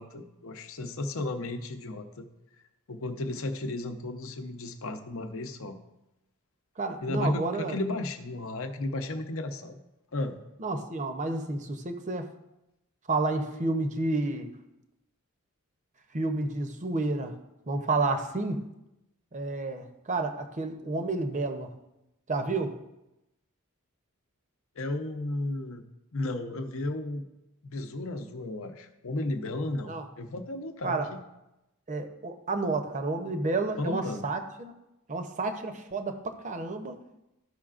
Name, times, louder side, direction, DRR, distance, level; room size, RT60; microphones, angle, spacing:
voice 1, 0.0-2.3 2.9-5.8 7.0-9.8 10.1-10.4 24.8-25.8 26.1-27.2 27.6-29.9 30.2-31.2 33.8-34.2, left 2 dB, 65° left, 7 dB, 0.7 m, -34 dB
voice 2, 6.8-7.8 10.6-12.3 13.1-14.5 16.1-17.4 17.7-18.6 19.3-21.7 22.3-22.7 29.9-30.1 30.8-31.1 31.9-34.7 35.1-37.0, right 3 dB, 35° right, 7 dB, 0.7 m, -30 dB
13.0 x 5.6 x 2.5 m, 0.92 s
head